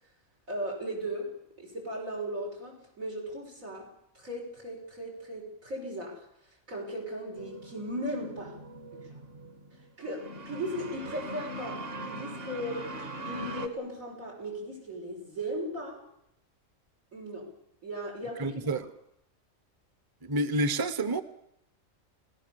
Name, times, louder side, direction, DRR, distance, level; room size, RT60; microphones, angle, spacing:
voice 1, 0.5-6.3 6.7-8.6 8.9-9.1 10.0-16.0 17.1-17.5 17.8-18.6, equal, 80° right, 6.7 m, -37 dB
sound 1, 7.4-13.7, right 1 dB, 45° right, 1.8 m, -41 dB
voice 2, 18.4-18.8 20.2-21.2, right 2 dB, 20° right, 0.8 m, -28 dB
29.5 x 18.0 x 7.0 m
omnidirectional pair, 1.4 m